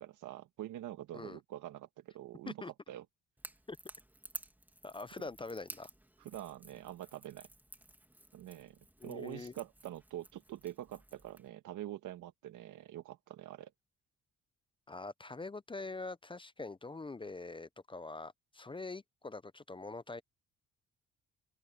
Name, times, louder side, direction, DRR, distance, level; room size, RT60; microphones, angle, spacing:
voice 1, 0.0-3.1 6.2-7.5 8.3-8.8 9.0-13.7, right 13 dB, 85° right, 1.9 m, -45 dB
Crackle / Crack, 3.4-11.5, right 1 dB, 5° right, 3.0 m, -53 dB
voice 2, 4.8-5.9 9.0-9.5 14.9-20.2, left 3 dB, 15° left, 0.6 m, -44 dB
cardioid pair, 90°, 30 cm